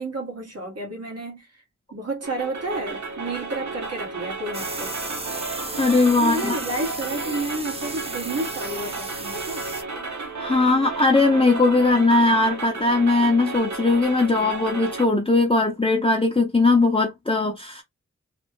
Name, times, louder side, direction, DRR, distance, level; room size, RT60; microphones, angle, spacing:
voice 1, 0.0-1.6 1.9-5.0 6.2-9.7, right 2 dB, 55° right, 1.6 m, -31 dB
sound 1, 2.2-15.1, right 3 dB, 75° right, 1.0 m, -33 dB
sound 2, 4.5-9.8, right 2 dB, 20° right, 0.7 m, -35 dB
voice 2, 5.8-6.6 10.4-17.8, left 3 dB, 20° left, 0.7 m, -19 dB
3.3 x 2.2 x 3.0 m
wide cardioid pair, 65°, 29 cm